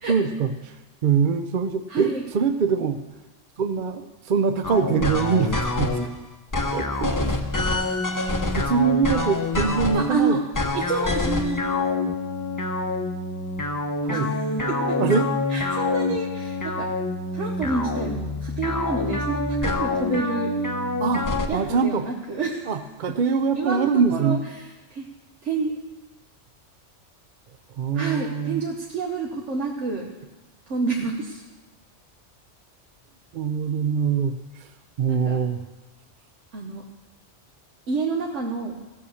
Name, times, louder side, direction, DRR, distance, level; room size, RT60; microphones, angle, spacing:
voice 1, 0.1-3.0 3.6-6.0 6.7-7.5 8.0-8.2 8.5-10.4 14.0-14.3 15.0-15.3 21.0-22.0 22.7-24.4 27.8-28.6 33.3-34.7 35.0-35.6, right 6 dB, 55° right, 8 dB, 0.6 m, -24 dB
voice 2, 1.9-2.2 9.9-10.4 10.7-11.6 14.1-15.2 15.5-16.9 17.3-20.5 21.5-22.7 23.5-25.0 25.4-25.7 27.9-30.1 30.7-31.4 35.1-35.4 36.5-36.8 37.9-38.8, right 4 dB, 80° right, 0 dB, 1.4 m, -28 dB
sound 1, 4.6-6.1 6.5-10.1 10.5-21.5, left 2 dB, 20° left, 0.7 m, -26 dB
16.0 x 6.3 x 7.0 m, 1.1 s
omnidirectional pair, 1.2 m